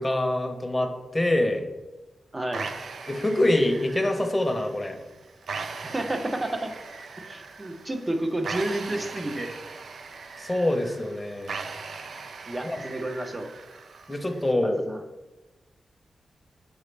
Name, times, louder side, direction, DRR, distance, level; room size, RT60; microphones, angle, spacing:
voice 1, 0.0-1.6 3.1-5.0 10.4-11.6 12.6-12.8 14.1-14.8, left 1 dB, 15° left, 4 dB, 0.8 m, -25 dB
voice 2, 2.3-2.6 5.8-6.7 7.3-9.5 12.5-13.5 14.6-15.0, right 1 dB, 25° right, 6 dB, 0.7 m, -30 dB
sound 1, 2.5-14.5, right 4 dB, 75° right, 0.4 m, -39 dB
6.2 x 4.9 x 3.3 m, 1.1 s
wide cardioid pair, 90°, 0 cm